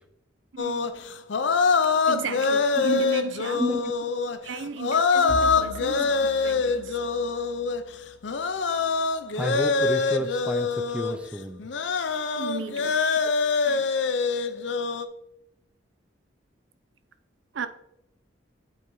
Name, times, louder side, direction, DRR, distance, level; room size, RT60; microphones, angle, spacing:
voice 1, 0.5-0.9 2.1-3.6 4.4-7.0 12.4-13.0 13.7-13.9 17.5-17.7, right 6 dB, 80° right, 0.6 m, -35 dB
sound 1, 0.6-11.2 11.6-15.1, left 4 dB, 70° left, 0.6 m, -25 dB
voice 2, 3.6-3.9 6.0-6.1 9.4-11.7, equal, 5° right, 0.5 m, -31 dB
Bowed string instrument, 5.3-9.9, left 2 dB, 85° left, 1.5 m, -42 dB
8.4 x 4.3 x 4.7 m
head